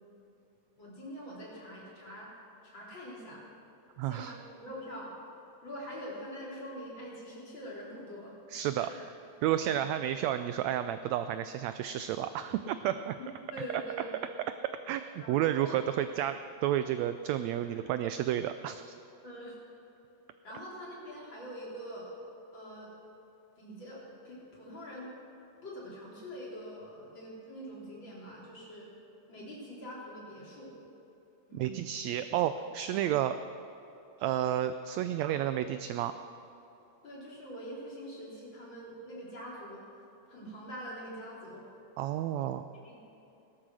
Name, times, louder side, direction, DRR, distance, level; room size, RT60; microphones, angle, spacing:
voice 1, 0.8-2.3 2.6-3.4 4.0-5.1 5.6-8.3 8.8-9.0 13.5-14.1 15.2-15.7 19.2-19.5 20.4-22.1 22.5-22.9 23.6-25.1 25.6-28.9 29.3-30.8 31.5-31.9 35.1-35.4 37.0-40.0 40.3-41.7 42.7-43.0, equal, 35° left, -5 dB, 4.2 m, -44 dB
voice 2, 4.0-4.4 8.5-8.9 9.4-13.2 13.7-13.8 14.9-18.9 31.5-33.4 34.2-36.1 42.0-42.7, right 11 dB, 80° right, 10 dB, 1.6 m, -31 dB
17.5 x 13.0 x 6.3 m, 2.9 s
omnidirectional pair, 3.5 m